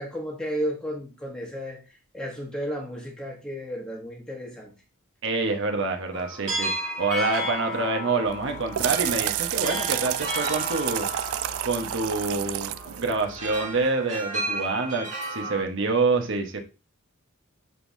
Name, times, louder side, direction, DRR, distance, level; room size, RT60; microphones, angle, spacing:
voice 1, 0.0-4.7, equal, 5° left, 1.2 m, -33 dB
voice 2, 5.2-11.1 11.6-12.7 13.0-16.6, right 3 dB, 65° right, 1.2 m, -27 dB
sound 1, 6.1-15.6, equal, 35° right, 2.5 m, -33 dB
sound 2, 8.3-13.8, right 13 dB, 90° right, 0.4 m, -30 dB
11.0 x 3.8 x 2.7 m
head